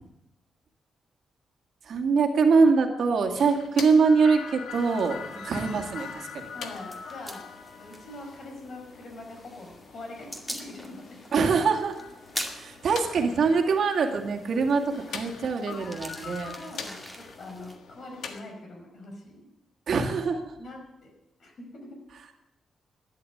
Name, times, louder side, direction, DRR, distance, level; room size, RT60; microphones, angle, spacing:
voice 1, 1.8-6.5 11.3-12.0 12.4-16.6 19.9-20.6, right 4 dB, 60° right, 3 dB, 2.2 m, -24 dB
sound 1, 3.3-18.4, left 6 dB, 75° left, 1.5 m, -43 dB
sound 2, 4.7-17.8, equal, 5° left, 2.2 m, -44 dB
voice 2, 6.5-11.2 15.7-19.5 20.1-20.2 20.6-21.1 21.4-22.0, left 2 dB, 55° left, 2 dB, 5.1 m, -44 dB
13.0 x 11.0 x 8.1 m, 0.89 s
cardioid pair, 115°, 0 cm